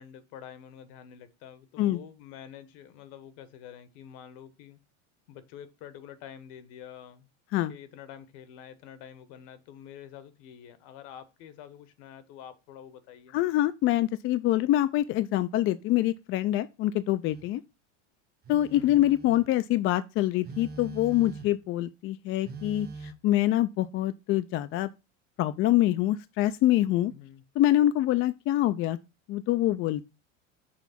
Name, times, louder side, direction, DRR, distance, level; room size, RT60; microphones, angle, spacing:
voice 1, 0.0-4.8 5.3-7.3 7.7-13.4 18.7-19.1 27.1-27.4, left 9 dB, 65° left, 1.2 m, -47 dB
voice 2, 13.3-17.6 18.5-24.9 25.4-27.1 27.6-29.0 29.3-30.0, left 14 dB, 35° left, 0.4 m, -25 dB
Telephone, 17.3-17.5 18.4-19.5 20.4-21.7 22.4-23.1, right 3 dB, 25° right, 0.8 m, -43 dB
6.3 x 3.5 x 5.6 m
supercardioid pair, 110°, 37 cm